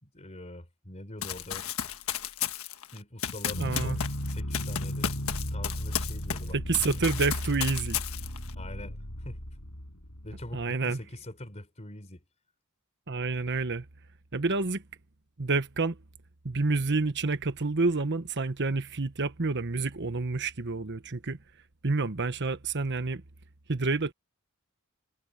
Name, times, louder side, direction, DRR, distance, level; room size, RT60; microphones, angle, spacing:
voice 1, 0.0-1.8 2.4-2.5 2.9-6.6 8.6-9.5 10.2-12.2, left 1 dB, 30° left, 4.0 m, -44 dB
Run, 1.2-6.5 6.7-8.5, left 9 dB, 75° left, 1.5 m, -34 dB
sound 1, 3.5-10.7, equal, 90° left, 5.7 m, -35 dB
voice 2, 3.6-4.0 6.5-8.0 10.5-11.0 13.1-13.8 14.3-14.8 15.4-16.0 16.4-21.4 21.8-23.2 23.7-24.1, right 3 dB, 55° right, 1.2 m, -28 dB
head